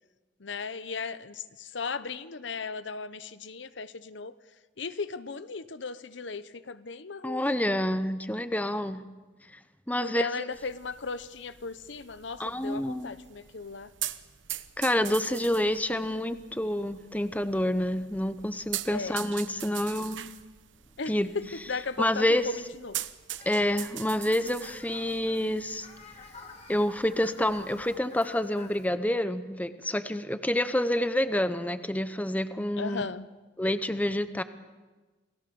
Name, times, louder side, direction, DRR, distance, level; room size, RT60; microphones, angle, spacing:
voice 1, 0.4-4.3 4.8-7.8 10.0-13.9 18.9-19.2 19.5-19.8 21.0-23.0 32.8-33.3, left 4 dB, 75° left, 14 dB, 0.9 m, -37 dB
voice 2, 7.2-9.0 9.9-10.5 12.4-13.1 14.8-20.3 21.1-21.3 22.0-22.5 23.4-25.9 26.7-33.1 33.6-34.4, left 1 dB, 10° left, 12 dB, 0.9 m, -28 dB
sound 1, 10.5-28.0, right 13 dB, 85° right, 1.0 m, -43 dB
Fowl, 23.4-28.9, left 3 dB, 35° left, 2.7 m, -51 dB
29.0 x 19.0 x 7.0 m, 1.3 s
head